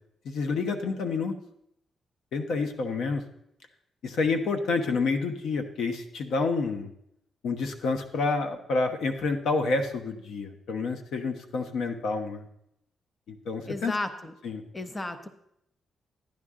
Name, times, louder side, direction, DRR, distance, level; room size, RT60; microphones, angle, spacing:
voice 1, 0.2-1.4 2.3-3.2 4.0-6.9 7.4-12.5 13.3-13.9 14.4-14.6, left 4 dB, 80° left, 6 dB, 1.1 m, -28 dB
voice 2, 13.7-14.3 14.7-15.3, left 2 dB, 15° left, 9 dB, 0.7 m, -33 dB
12.0 x 9.8 x 3.7 m, 0.77 s
cardioid pair, 135°, 0 cm